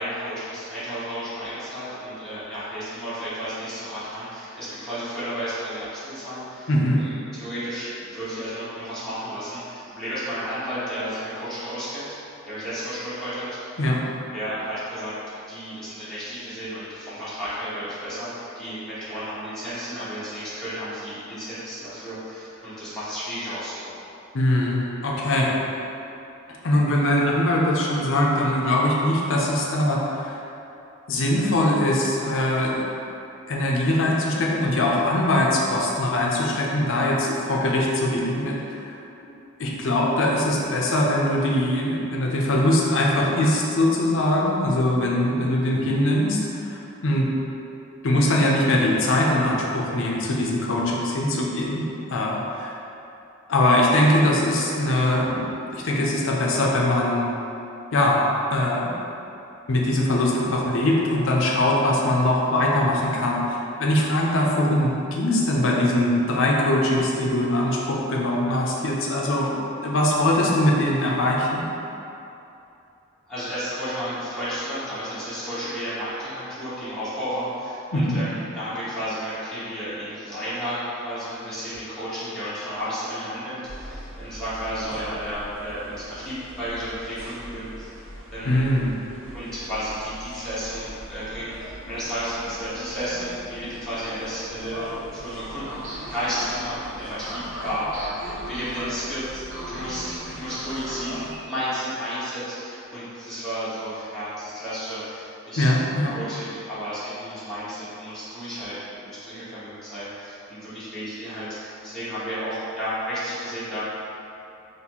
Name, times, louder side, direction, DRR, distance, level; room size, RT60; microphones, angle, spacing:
voice 1, 0.0-6.7 6.9-12.2 12.4-13.6 14.3-23.9 73.3-88.0 88.3-88.7 89.3-105.7 106.1-113.9, equal, 5° left, -14 dB, 1.2 m, -32 dB
voice 2, 6.7-7.0 13.8-14.0 24.3-25.5 26.6-30.4 31.1-32.8 33.5-38.6 38.9-39.0 39.6-47.3 48.0-51.8 52.1-52.7 53.5-57.2 57.9-58.2 58.5-58.9 59.7-69.5 69.8-71.6 77.9-78.2 88.4-88.9 105.6-106.2, left 1 dB, 65° left, -2 dB, 0.6 m, -22 dB
sound 1, 83.6-101.4, equal, 65° right, 0.7 m, -39 dB
4.1 x 3.1 x 2.9 m, 2.8 s
head